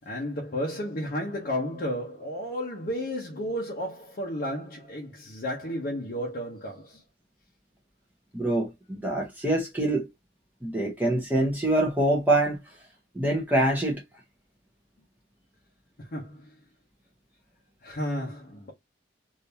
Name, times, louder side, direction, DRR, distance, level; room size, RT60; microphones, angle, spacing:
voice 1, 0.0-7.0 16.0-16.6 17.8-18.7, equal, 55° left, 0.9 m, -33 dB
voice 2, 8.3-10.1 10.6-12.6 13.1-14.0, right 1 dB, 10° right, 1.0 m, -25 dB
3.5 x 2.7 x 2.8 m
head